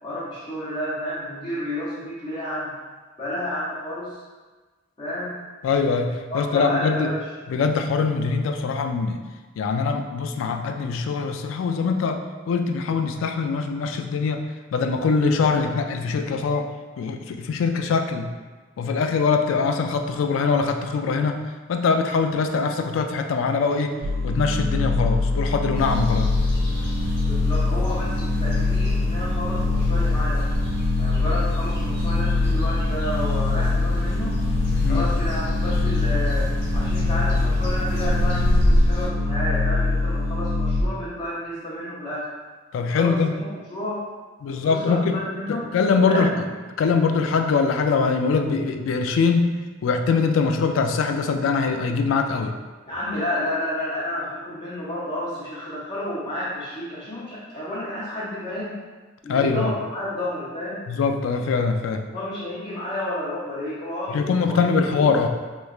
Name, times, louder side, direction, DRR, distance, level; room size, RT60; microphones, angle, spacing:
voice 1, 0.0-2.7 3.2-4.2 5.0-5.4 6.3-7.3 27.3-30.5 31.0-34.4 34.9-42.3 42.9-44.0 44.5-45.7 46.0-46.3 52.9-58.8 59.2-60.9 62.1-65.1, left 1 dB, 30° left, -10 dB, 0.6 m, -31 dB
voice 2, 5.6-7.1 7.5-9.2 9.6-12.2 12.5-14.4 14.7-16.7 17.0-18.3 18.8-21.4 21.7-23.9 24.2-26.3 34.8-35.1 42.7-43.3 44.4-45.2 45.5-46.3 46.8-49.5 49.8-52.5 59.3-59.7 60.9-62.0 64.1-65.3, left 5 dB, 85° left, 6 dB, 0.3 m, -22 dB
sound 1, 24.0-40.8, left 3 dB, 75° right, 0.4 m, -23 dB
sound 2, 25.7-39.1, equal, 60° left, 1.0 m, -28 dB
3.2 x 3.0 x 2.3 m, 1.3 s
head